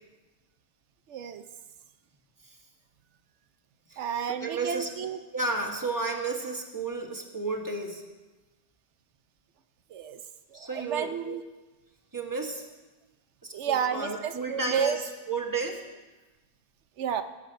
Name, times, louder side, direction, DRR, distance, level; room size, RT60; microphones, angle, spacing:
voice 1, 1.1-1.4 4.0-5.2 9.9-10.2 10.5-11.4 13.5-15.0 17.0-17.2, right 7 dB, 85° right, 9 dB, 1.0 m, -31 dB
voice 2, 4.4-4.9 5.3-8.0 10.5-11.1 12.1-12.6 13.4-15.8, right 3 dB, 15° right, 1 dB, 1.5 m, -32 dB
17.5 x 8.4 x 5.1 m, 1.2 s
omnidirectional pair, 1.2 m